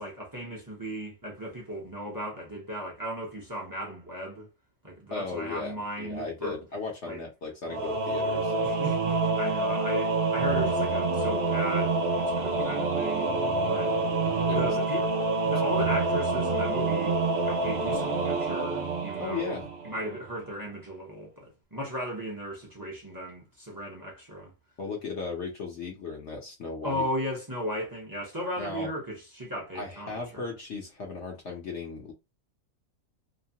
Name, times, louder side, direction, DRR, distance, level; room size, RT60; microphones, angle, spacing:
voice 1, 0.0-4.5 4.8-6.6 7.1-7.2 8.6-13.3 13.7-14.0 14.5-15.0 15.4-17.1 17.5-19.6 19.8-24.5 26.8-30.5, equal, 20° right, 0.6 m, -36 dB
voice 2, 5.1-8.5 14.1-15.2 15.8-15.9 19.2-19.7 24.8-27.1 28.6-28.9 29.7-32.1, left 4 dB, 60° left, 0.9 m, -36 dB
Singing / Musical instrument, 7.7-20.1, right 3 dB, 65° right, 0.6 m, -27 dB
2.9 x 2.1 x 2.7 m
omnidirectional pair, 1.6 m